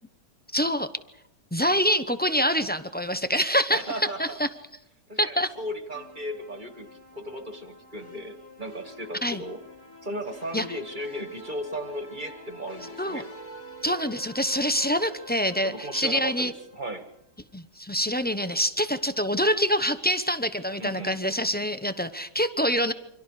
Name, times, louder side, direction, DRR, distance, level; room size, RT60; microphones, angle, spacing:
voice 1, 0.5-0.9 1.5-3.8 4.2-4.5 5.2-5.5 9.2-9.4 10.5-10.6 13.0-13.2 13.8-16.5 17.5-22.9, equal, 10° left, 10 dB, 0.4 m, -25 dB
voice 2, 3.7-4.4 5.1-9.6 10.0-13.3 15.6-17.1 20.8-21.2, right 1 dB, 25° right, 7 dB, 1.9 m, -36 dB
sound 1, 5.9-17.2, left 1 dB, 50° left, 3.3 m, -46 dB
29.0 x 25.0 x 5.0 m, 0.81 s
omnidirectional pair, 1.9 m